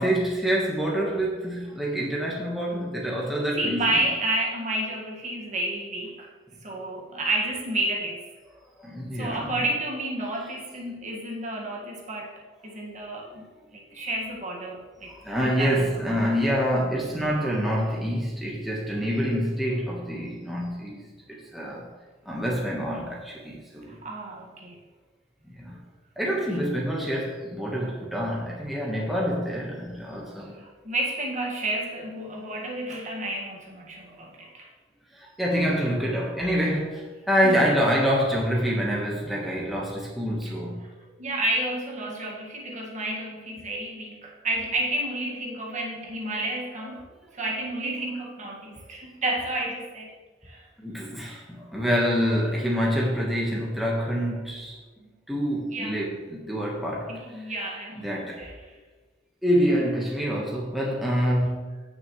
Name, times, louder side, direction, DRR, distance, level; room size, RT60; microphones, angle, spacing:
voice 1, 0.0-4.0 8.8-9.5 15.1-21.9 22.2-24.0 25.4-25.8 26.2-30.6 35.1-40.9 50.8-54.8 55.3-57.4 58.0-58.5 59.4-61.8, equal, ahead, -4 dB, 1.3 m, -26 dB
voice 2, 3.6-6.3 6.6-8.3 9.1-12.3 12.6-16.1 23.9-24.8 30.5-34.7 37.4-37.6 41.2-47.1 47.3-50.1 50.4-50.7 55.7-56.1 57.1-58.1 58.4-58.7, right 1 dB, 40° right, -1 dB, 1.8 m, -31 dB
16.0 x 6.2 x 3.2 m, 1.3 s
head